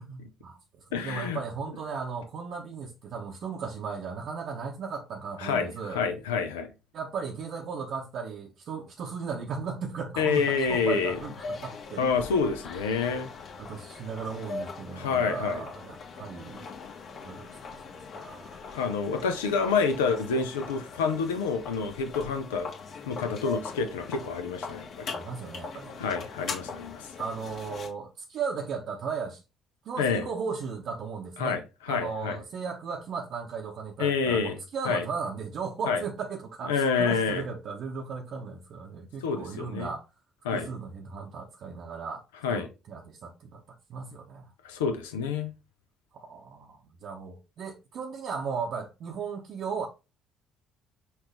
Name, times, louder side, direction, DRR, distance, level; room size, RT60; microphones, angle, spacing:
voice 1, 0.0-6.0 6.9-12.1 13.6-16.7 17.2-17.8 18.1-19.0 25.1-26.0 27.2-29.4 29.8-31.6 31.9-40.0 40.5-42.2 42.5-44.5 46.1-49.9, right 5 dB, 50° right, 0.8 m, -36 dB
voice 2, 0.9-1.4 5.4-6.7 10.2-11.2 12.0-13.3 14.9-15.6 18.7-22.7 23.0-25.1 26.0-27.0 30.0-30.3 31.4-31.6 31.9-32.4 34.0-34.6 34.9-35.0 35.9-36.0 36.7-37.4 39.2-39.9 40.4-40.7 42.4-42.7 44.6-45.5, left 5 dB, 75° left, 0.7 m, -28 dB
sound 1, 10.3-27.9, left 4 dB, 50° left, 1.5 m, -41 dB
5.7 x 2.7 x 3.3 m
figure-of-eight pair, 50°, 0 cm